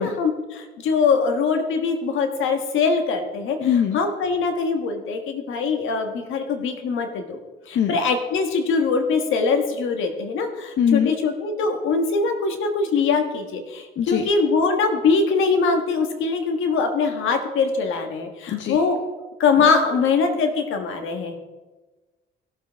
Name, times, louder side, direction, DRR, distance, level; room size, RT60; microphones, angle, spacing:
voice 1, 0.0-3.6 3.9-19.0 19.4-21.4, left 4 dB, 85° left, 6 dB, 1.4 m, -22 dB
voice 2, 3.6-4.0 7.7-8.0 10.8-11.1 14.0-14.2 18.5-18.8, left 8 dB, 65° left, 6 dB, 0.7 m, -21 dB
16.0 x 7.1 x 3.5 m, 1.2 s
cardioid pair, 90°, 20 cm